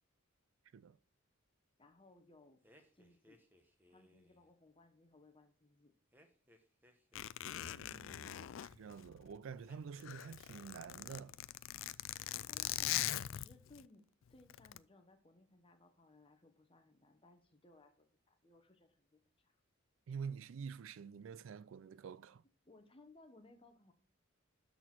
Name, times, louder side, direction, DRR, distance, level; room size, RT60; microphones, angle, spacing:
voice 1, 1.8-2.6 2.9-3.4 3.9-5.9 12.5-19.5 22.6-23.9, left 2 dB, 25° left, 1.0 m, -64 dB
sound 1, 2.6-4.5 6.1-7.9 9.6-10.7 11.0-11.5, equal, 10° right, 0.9 m, -67 dB
Zipper (clothing), 7.1-9.5 9.9-13.8 14.5-14.8, left 13 dB, 65° left, 0.3 m, -41 dB
voice 2, 7.6-11.3 20.1-22.4, right 6 dB, 70° right, 0.3 m, -48 dB
12.5 x 4.3 x 4.4 m
head